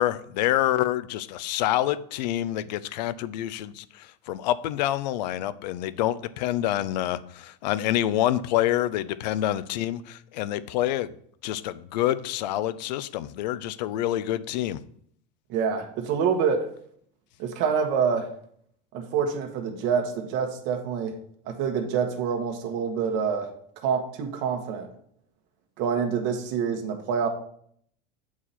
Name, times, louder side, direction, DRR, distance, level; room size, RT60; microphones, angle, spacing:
voice 1, 0.0-11.1 11.4-14.8, left 13 dB, 85° left, 15 dB, 0.5 m, -27 dB
voice 2, 15.5-16.7 17.4-18.3 18.9-21.1 21.5-23.5 23.8-24.9 25.8-27.3, right 6 dB, 60° right, 3 dB, 1.3 m, -26 dB
7.3 x 4.8 x 4.2 m, 0.64 s
supercardioid pair, 115°, 21 cm